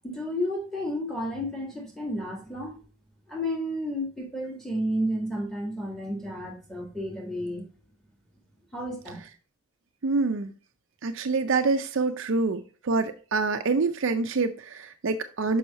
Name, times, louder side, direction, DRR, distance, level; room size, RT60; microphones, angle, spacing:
voice 1, 0.0-2.8 3.3-7.7 8.7-9.2, equal, ahead, 1.7 m, -31 dB
voice 2, 10.0-10.5 11.0-15.6, right 4 dB, 60° right, 0.5 m, -26 dB
6.3 x 5.5 x 4.1 m
head